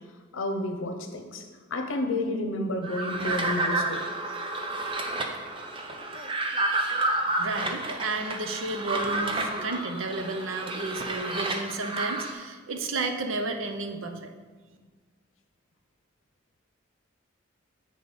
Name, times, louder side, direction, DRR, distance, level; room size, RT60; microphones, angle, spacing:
voice 1, 0.3-1.4 1.7-4.0, left 1 dB, 80° left, 5 dB, 0.8 m, -30 dB
sound 1, 2.8-12.3, right 2 dB, 25° right, 0.6 m, -30 dB
voice 2, 7.4-14.3 14.7-14.8, right 3 dB, 80° right, 6 dB, 0.8 m, -32 dB
8.1 x 3.9 x 5.2 m, 1.4 s
head